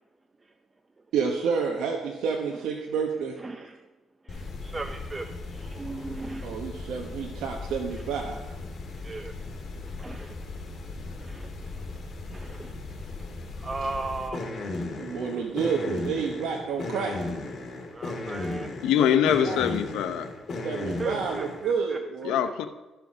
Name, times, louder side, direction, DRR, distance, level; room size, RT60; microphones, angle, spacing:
voice 1, 1.1-3.4 6.4-8.5 13.8-13.9 15.0-17.5 19.0-19.1 19.4-19.6 20.6-22.4, right 6 dB, 80° right, 0 dB, 1.1 m, -29 dB
voice 2, 3.4-3.8 4.2-6.5 9.0-9.4 10.0-10.4 11.2-11.5 12.3-12.8 13.6-14.5 17.9-18.7 21.0-22.0, right 3 dB, 25° right, 7 dB, 0.5 m, -37 dB
sound 1, 4.3-21.7, left 2 dB, 45° left, 1.9 m, -36 dB
voice 3, 18.8-20.3 22.2-22.7, left 9 dB, 90° left, 9 dB, 0.7 m, -23 dB
12.5 x 5.9 x 4.9 m, 1.1 s
cardioid pair, 90°, 0 cm